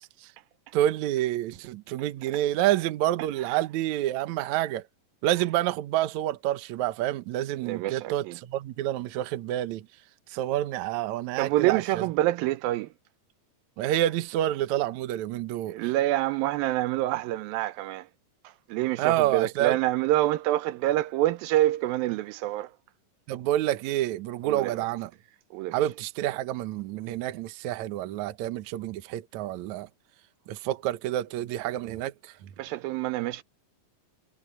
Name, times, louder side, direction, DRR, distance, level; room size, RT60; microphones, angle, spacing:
voice 1, 0.7-4.8 5.2-9.9 10.3-12.0 13.8-15.8 19.0-19.8 23.3-25.1 25.7-29.9 30.5-32.5, right 13 dB, 70° right, 2.0 m, -28 dB
voice 2, 7.6-8.4 11.4-12.9 15.7-18.1 18.4-22.7 24.4-24.7 25.5-25.8 32.6-33.4, right 15 dB, 85° right, 2.4 m, -27 dB
omnidirectional pair, 4.2 m